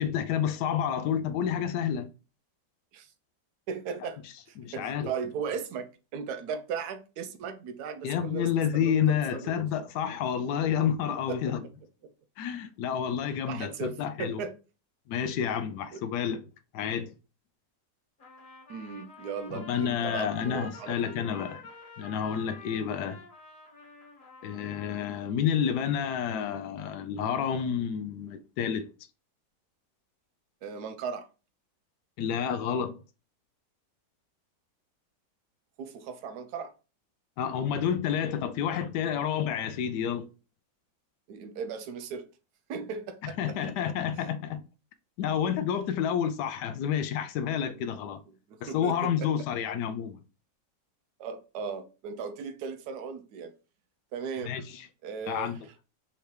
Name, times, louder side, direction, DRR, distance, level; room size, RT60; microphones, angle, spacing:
voice 1, 0.0-2.1 4.6-5.1 8.0-11.6 12.4-14.4 15.1-16.4 16.7-17.1 19.5-21.6 22.0-23.2 24.4-28.8 32.2-32.9 37.4-40.2 43.4-44.6 45.2-48.2 48.6-50.2 54.4-54.8 55.3-55.6, left 8 dB, 75° left, 1.2 m, -29 dB
voice 2, 3.7-4.2 4.5-9.7 11.3-11.4 13.5-14.5 15.9-16.0 18.7-21.3 30.6-31.3 35.8-36.7 41.3-42.3 42.7-43.6 45.5-45.6 47.5-47.6 48.5-49.3 51.2-53.5 54.1-54.6 55.0-55.6, right 6 dB, 75° right, 1.1 m, -37 dB
Trumpet, 18.2-25.3, left 4 dB, 30° left, 1.3 m, -48 dB
5.7 x 2.8 x 3.2 m
omnidirectional pair, 1.9 m